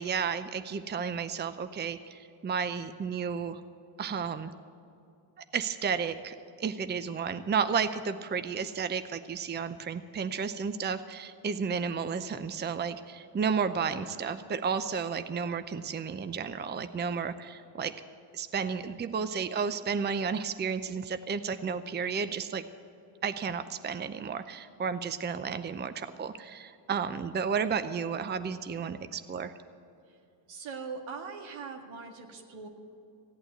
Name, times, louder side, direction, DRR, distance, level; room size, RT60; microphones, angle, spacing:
voice 1, 0.0-3.6 4.0-4.5 5.5-18.0 18.3-22.7 23.2-29.5, right 6 dB, 20° right, 11 dB, 0.6 m, -32 dB
voice 2, 30.5-32.7, right 5 dB, 75° right, 4 dB, 1.9 m, -41 dB
16.5 x 8.8 x 8.2 m, 2.7 s
cardioid pair, 80°, 47 cm